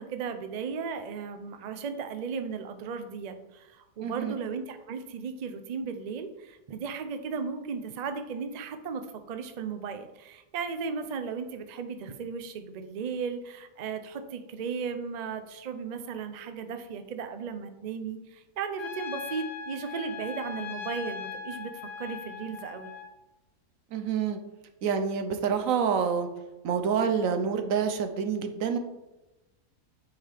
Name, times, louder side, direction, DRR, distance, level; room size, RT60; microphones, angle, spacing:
voice 1, 0.0-9.0 9.3-21.7 22.0-22.9, right 5 dB, 90° right, 8 dB, 0.3 m, -36 dB
voice 2, 4.0-4.4 23.9-24.4 24.8-26.3 26.6-28.8, right 6 dB, 65° right, 7 dB, 1.1 m, -27 dB
Trumpet, 18.8-23.1, left 7 dB, 45° left, 0.8 m, -39 dB
8.9 x 4.9 x 3.4 m, 1.0 s
omnidirectional pair, 1.6 m